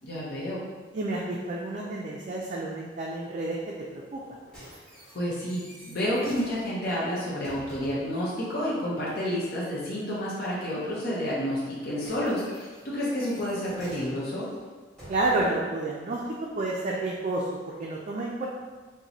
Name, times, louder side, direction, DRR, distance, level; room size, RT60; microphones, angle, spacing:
voice 1, 0.0-0.6 5.1-14.5, equal, 55° left, -7 dB, 0.7 m, -30 dB
voice 2, 0.9-3.6 3.9-4.2 15.1-16.2 16.6-18.4, right 2 dB, 40° right, -3 dB, 0.3 m, -30 dB
sound 1, 4.1-8.2 11.5-15.7 16.5-16.6, equal, 5° left, 1.3 m, -49 dB
3.0 x 2.1 x 3.9 m, 1.4 s
head